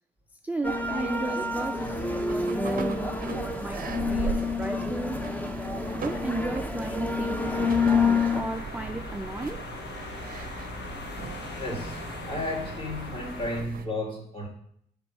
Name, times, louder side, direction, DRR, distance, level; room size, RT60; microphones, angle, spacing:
voice 1, 0.4-5.2 5.9-9.7, right 2 dB, 10° right, 0.4 m, -35 dB
sound 1, 0.6-8.4, left 4 dB, 10° left, 0.8 m, -28 dB
sound 2, 1.8-13.9, right 6 dB, 50° right, 0.7 m, -39 dB
sound 3, 7.4-13.6, left 3 dB, 60° left, 1.1 m, -39 dB
voice 2, 11.6-12.0 12.3-14.5, left 1 dB, 25° left, 2.3 m, -33 dB
5.8 x 3.7 x 5.0 m
hypercardioid pair, 45°, 20 cm